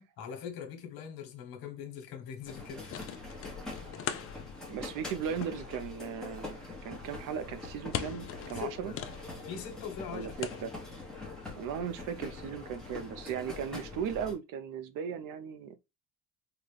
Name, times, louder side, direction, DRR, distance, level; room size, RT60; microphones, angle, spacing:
voice 1, 0.0-3.0 8.5-9.0 9.4-10.3 10.6-10.7, left 7 dB, 75° left, 1.2 m, -42 dB
sound 1, 2.4-13.3, left 9 dB, 40° left, 0.4 m, -44 dB
sound 2, 2.4-14.3, left 2 dB, ahead, 0.9 m, -44 dB
voice 2, 4.7-8.9 10.1-10.7 11.5-15.8, right 8 dB, 60° right, 0.6 m, -37 dB
3.8 x 2.2 x 3.2 m
cardioid pair, 155°, 37 cm